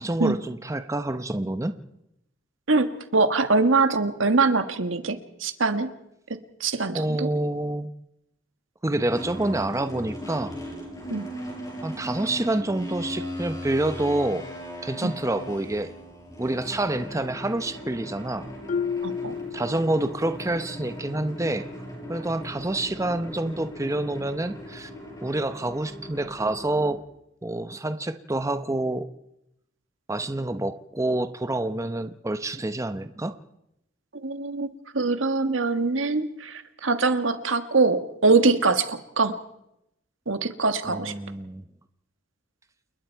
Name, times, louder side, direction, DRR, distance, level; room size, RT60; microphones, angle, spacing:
voice 1, 0.0-1.7 6.9-7.9 8.8-10.6 11.8-14.5 14.8-15.9 16.4-18.5 19.5-21.7 22.1-24.9 25.2-27.0 27.4-29.1 30.1-33.4 40.8-41.6, right 2 dB, 15° right, 10 dB, 0.8 m, -27 dB
voice 2, 2.7-5.9 6.6-7.3 11.1-11.2 15.0-15.1 19.0-19.3 34.2-39.3 40.3-41.1, right 3 dB, 80° right, 9 dB, 1.6 m, -23 dB
sound 1, 9.1-27.0, equal, 20° left, 7.0 m, -38 dB
Marimba xylophone, 18.7-20.4, left 6 dB, 40° left, 0.7 m, -31 dB
28.5 x 21.0 x 4.6 m, 0.83 s
head